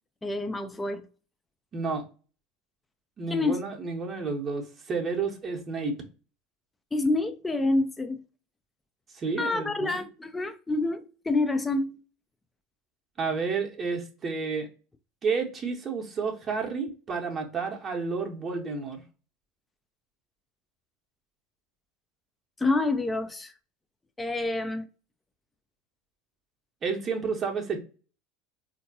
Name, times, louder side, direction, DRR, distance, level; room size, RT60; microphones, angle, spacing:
voice 1, 0.2-1.1 3.3-3.6 6.9-8.2 9.4-12.0 22.6-23.5 24.2-24.9, left 2 dB, 15° left, 0.4 m, -27 dB
voice 2, 1.7-2.0 3.2-6.0 9.1-10.0 13.2-14.7 15.2-19.0 26.8-27.8, right 4 dB, 35° right, 0.8 m, -31 dB
3.6 x 2.6 x 2.6 m
figure-of-eight pair, 70°, 0 cm